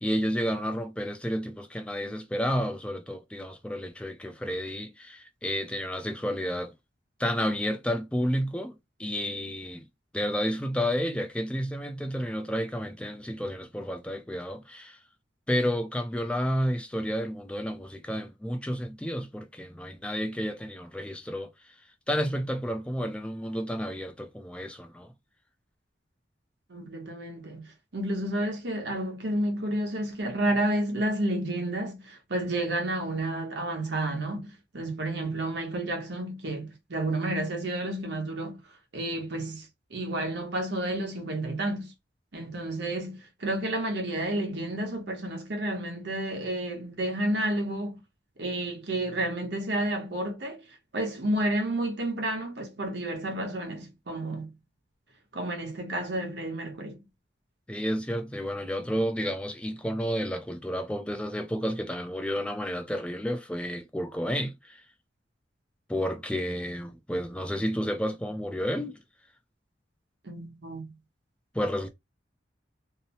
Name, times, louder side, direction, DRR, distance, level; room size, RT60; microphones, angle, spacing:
voice 1, 0.0-6.7 7.2-9.8 10.1-15.0 15.5-21.5 22.1-25.1 57.7-64.8 65.9-69.0 71.5-71.9, equal, 5° left, 0.4 m, -31 dB
voice 2, 26.7-38.6 38.9-41.9 42.3-48.0 48.4-50.6 50.9-54.5 55.3-57.0 70.2-71.0, right 1 dB, 65° right, 0.9 m, -31 dB
2.8 x 2.0 x 2.8 m
head